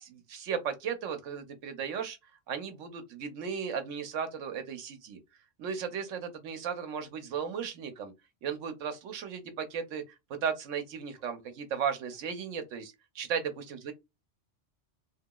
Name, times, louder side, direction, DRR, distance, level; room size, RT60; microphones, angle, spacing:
voice 1, 0.0-2.2 2.5-5.2 5.6-8.1 8.4-13.9, right 7 dB, 90° right, 1.1 m, -35 dB
3.1 x 2.9 x 2.2 m
omnidirectional pair, 1.3 m